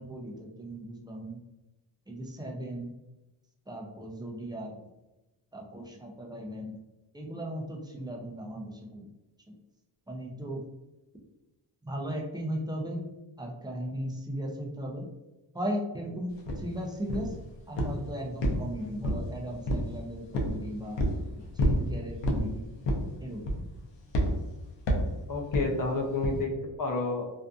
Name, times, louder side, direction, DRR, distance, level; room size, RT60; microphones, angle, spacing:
voice 1, 0.0-1.4 2.1-2.9 3.7-4.7 5.5-6.8 7.1-9.1 10.1-10.6 11.9-13.0 13.4-15.1 15.5-17.4 17.7-21.0 21.5-22.7 23.2-23.5, equal, 10° right, -1 dB, 0.4 m, -37 dB
sound 1, 16.5-16.6 17.1-17.4 17.8-18.0 18.4-19.3 19.7-19.9 20.3-20.6 21.0-21.2 21.6-21.8 22.2-22.5 22.8-23.1 23.5-23.8 24.1-24.3 24.9-25.1 25.5-25.7 26.2-26.4, equal, 90° left, 0.6 m, -27 dB
voice 2, 25.3-27.2, left 3 dB, 50° left, 1 dB, 0.6 m, -30 dB
2.6 x 2.4 x 2.3 m, 1.0 s
wide cardioid pair, 115°, 43 cm